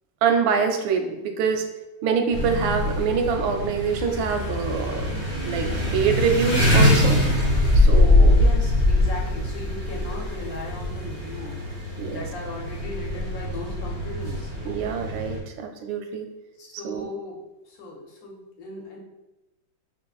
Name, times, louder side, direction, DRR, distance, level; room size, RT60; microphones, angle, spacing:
voice 1, 0.2-1.7 2.0-7.2 7.7-8.4 12.0-12.2 14.6-16.3 16.8-17.1, right 6 dB, 85° right, 5 dB, 1.3 m, -25 dB
sound 1, 2.3-15.4, left 1 dB, 30° right, 0.7 m, -22 dB
voice 2, 8.3-14.5 16.6-19.0, left 1 dB, 60° left, -2 dB, 1.0 m, -38 dB
5.0 x 3.0 x 2.3 m, 0.99 s
omnidirectional pair, 2.1 m